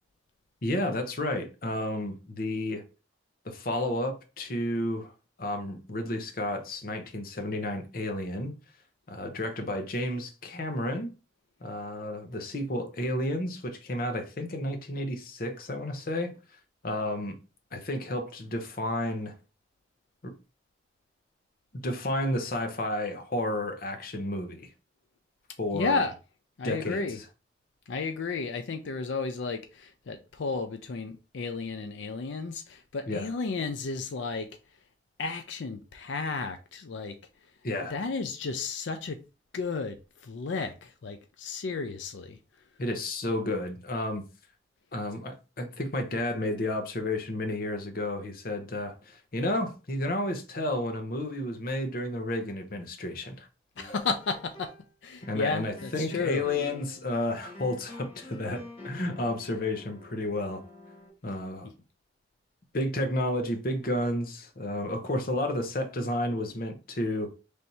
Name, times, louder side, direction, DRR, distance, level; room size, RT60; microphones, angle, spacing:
voice 1, 0.6-2.8 3.4-5.1 5.4-8.5 9.1-11.1 11.6-16.3 16.8-17.3 17.7-19.3 20.2-20.3 21.8-24.7 25.6-26.0 26.6-27.1 33.1-33.3 37.6-38.0 42.8-44.2 44.9-53.5 55.3-60.6 61.2-61.7 62.7-67.3, left 1 dB, 50° left, 0.7 m, -31 dB
voice 2, 25.7-26.1 26.6-27.2 27.9-34.5 35.2-37.2 37.8-39.2 39.5-42.4 53.8-54.7 55.0-56.5, left 4 dB, 90° left, 0.5 m, -33 dB
sound 1, 53.8-54.9 55.2-61.1, left 2 dB, 30° left, 1.2 m, -47 dB
3.4 x 2.7 x 4.2 m
head